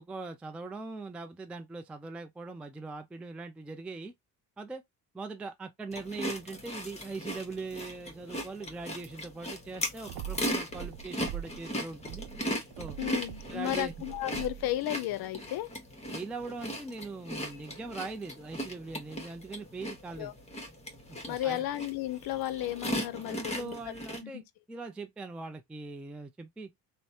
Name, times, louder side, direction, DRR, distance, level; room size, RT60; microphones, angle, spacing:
voice 1, 0.0-4.1 4.6-4.8 5.1-12.3 12.8-13.0 13.5-13.9 16.1-20.3 21.1-21.7 23.3-26.7, right 3 dB, 5° right, 0.3 m, -41 dB
sound 1, 5.9-24.2, equal, 15° left, 1.0 m, -38 dB
sound 2, 10.1-11.7 12.0-14.8, right 11 dB, 60° right, 0.5 m, -43 dB
voice 2, 13.0-15.7 20.2-20.3 21.2-23.8 24.2-24.4, left 14 dB, 55° left, 0.6 m, -33 dB
3.1 x 2.1 x 2.6 m
supercardioid pair, 65°, 45 cm